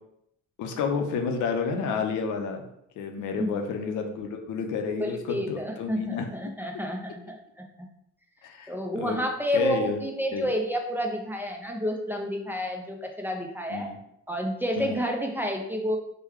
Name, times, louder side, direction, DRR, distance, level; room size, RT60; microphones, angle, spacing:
voice 1, 0.6-2.6 3.0-6.3 8.4-9.2 9.5-10.0 10.3-10.5 13.7-14.0 14.8-15.0, left 5 dB, 80° left, 4 dB, 0.6 m, -30 dB
voice 2, 5.0-7.7 8.7-13.9 14.3-16.0, equal, 5° right, 1 dB, 0.4 m, -30 dB
3.1 x 2.2 x 3.5 m, 0.76 s
cardioid pair, 90°, 30 cm